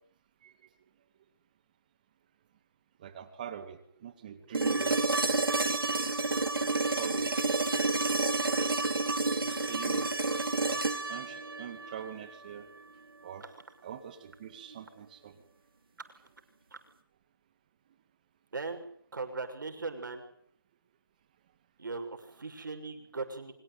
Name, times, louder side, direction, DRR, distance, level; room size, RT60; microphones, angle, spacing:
voice 1, 3.0-5.5 6.3-7.4 9.4-10.1 10.7-10.8 11.1-12.7 13.2-13.5 13.8-15.3, right 9 dB, 20° right, 9 dB, 2.2 m, -44 dB
sound 1, 4.5-12.6 14.7-14.8, right 3 dB, 85° right, 4.6 m, -30 dB
voice 2, 18.5-18.8 19.1-20.2 21.8-23.5, right 3 dB, 60° right, 6 dB, 6.6 m, -38 dB
25.0 x 23.5 x 9.3 m, 0.63 s
figure-of-eight pair, 170°, 12 cm